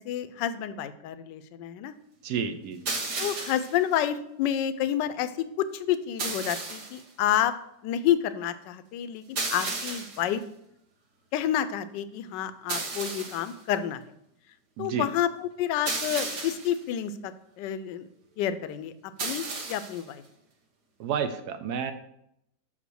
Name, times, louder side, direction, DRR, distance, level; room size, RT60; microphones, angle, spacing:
voice 1, 0.0-1.9 3.2-7.5 7.8-10.4 11.3-14.0 14.8-18.1 18.4-18.9 19.2-20.2, left 10 dB, 80° left, 12 dB, 1.2 m, -29 dB
voice 2, 2.2-2.9 14.8-15.1 21.0-21.9, right 7 dB, 70° right, 9 dB, 1.1 m, -30 dB
sound 1, 2.9-3.8 6.2-7.0 9.4-10.3 12.7-13.5 15.9-16.8 19.2-20.0, right 3 dB, 45° right, 1.4 m, -33 dB
6.0 x 5.6 x 6.3 m, 0.76 s
omnidirectional pair, 1.9 m